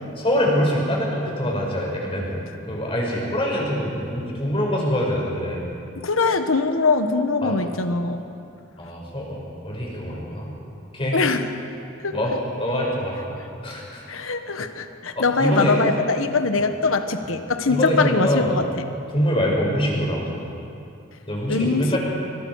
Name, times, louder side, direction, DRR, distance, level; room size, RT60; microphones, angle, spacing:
voice 1, 0.2-5.6 7.4-7.6 8.8-10.5 10.9-11.2 12.1-14.1 15.1-15.7 17.7-18.6 19.1-20.4 21.3-22.0, equal, 25° left, -2 dB, 5.7 m, -24 dB
voice 2, 5.9-8.2 11.1-11.5 12.0-12.2 14.1-18.7 21.5-22.0, left 3 dB, 85° left, 8 dB, 1.3 m, -22 dB
26.0 x 24.5 x 4.8 m, 2.6 s
head